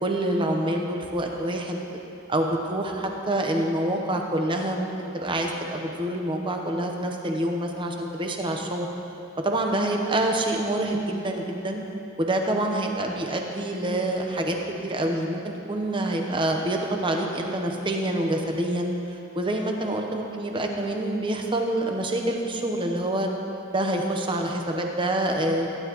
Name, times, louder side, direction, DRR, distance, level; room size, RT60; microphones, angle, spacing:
voice 1, 0.0-1.8 2.3-8.9 9.4-11.8 12.2-14.6 14.8-23.3 23.7-25.7, right 1 dB, 25° right, 2 dB, 0.9 m, -26 dB
16.0 x 10.5 x 3.1 m, 2.9 s
head